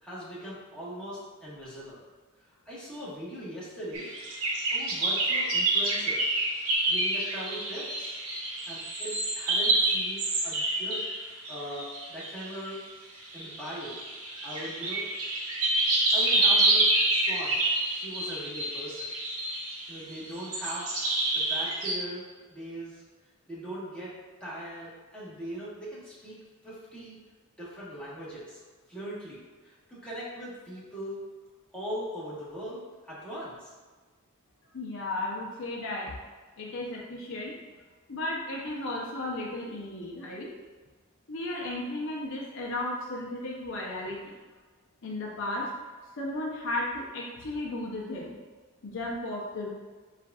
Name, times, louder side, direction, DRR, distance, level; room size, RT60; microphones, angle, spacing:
voice 1, 0.0-2.0 2.5-4.1 4.4-6.2 6.9-8.2 8.7-12.8 13.3-14.0 14.4-15.0 15.9-17.6 17.9-19.1 19.9-22.2 22.5-23.0 23.5-24.1 24.4-26.4 26.6-27.1 27.6-28.6 28.9-31.2 31.7-33.7, equal, 5° left, -10 dB, 1.3 m, -40 dB
sound 1, 3.9-12.7 13.3-21.9, right 2 dB, 70° right, 0.9 m, -28 dB
voice 2, 34.7-36.1 36.6-37.5 38.1-40.5 41.3-44.3 45.0-45.7 46.2-48.4 48.8-49.7, left 2 dB, 60° left, -3 dB, 0.7 m, -34 dB
7.4 x 2.5 x 2.3 m, 1.4 s
head